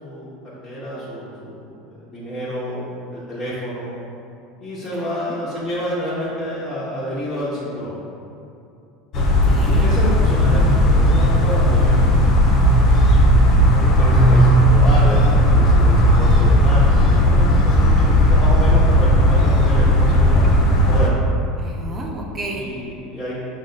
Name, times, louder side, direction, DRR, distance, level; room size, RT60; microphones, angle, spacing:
voice 1, 0.6-2.8 3.1-4.0 4.6-7.9 9.6-12.0 12.7-13.2 13.6-20.4 20.8-21.2 22.5-23.3, equal, 15° left, -11 dB, 0.8 m, -29 dB
voice 2, 4.9-5.4 9.1-10.0 21.6-22.7, right 1 dB, 25° right, 0 dB, 0.6 m, -33 dB
windy evening on the cemetery, 9.1-21.1, equal, 45° left, 0.6 m, -14 dB
5.0 x 2.2 x 3.9 m, 2.7 s
supercardioid pair, 115°, 0 cm